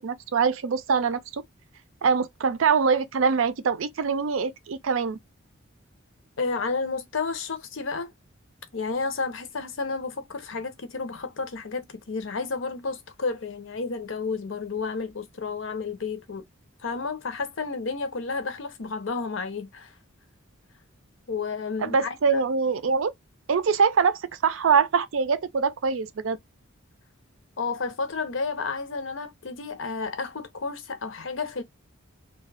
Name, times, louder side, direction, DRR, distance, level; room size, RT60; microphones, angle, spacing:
voice 1, 0.0-1.4 2.0-5.2 21.8-23.1 23.5-26.4, right 5 dB, 75° right, 0.4 m, -24 dB
voice 2, 6.4-8.1 8.7-16.4 16.8-19.9 21.3-22.4 27.6-31.6, left 4 dB, 65° left, 0.7 m, -31 dB
2.6 x 2.2 x 3.2 m
head